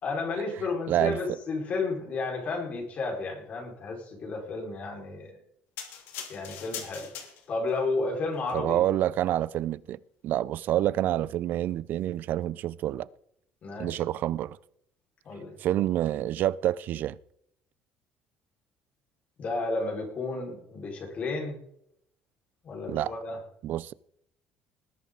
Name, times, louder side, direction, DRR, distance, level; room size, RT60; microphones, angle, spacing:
voice 1, 0.0-5.4 6.3-7.1 7.5-8.8 13.6-14.0 15.2-15.5 19.4-21.6 22.6-23.4, left 3 dB, 45° left, 4.9 m, -32 dB
voice 2, 0.9-1.2 8.5-13.1 13.8-14.6 15.6-17.2 22.9-23.1 23.6-23.9, right 12 dB, 60° right, 0.5 m, -27 dB
sound 1, 5.8-7.7 8.4-8.5, left 8 dB, 75° left, 2.7 m, -41 dB
20.0 x 11.0 x 4.0 m
cardioid pair, 115°, 4 cm